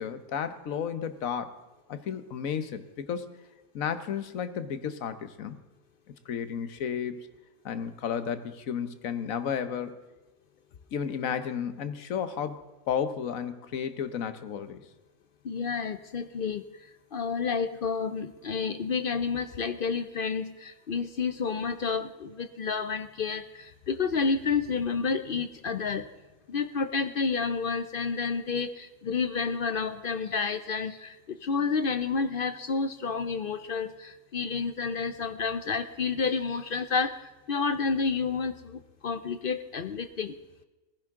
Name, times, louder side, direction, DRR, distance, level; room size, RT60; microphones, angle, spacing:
voice 1, 0.0-1.6 1.9-3.4 3.7-5.6 6.3-7.3 7.6-10.0 10.9-14.8, left 7 dB, 75° left, 11 dB, 1.4 m, -33 dB
voice 2, 15.4-16.6 17.1-26.0 26.5-31.2 31.4-37.2 37.5-40.3, left 5 dB, 55° left, 11 dB, 0.6 m, -30 dB
19.0 x 15.5 x 3.7 m, 1.1 s
omnidirectional pair, 1.4 m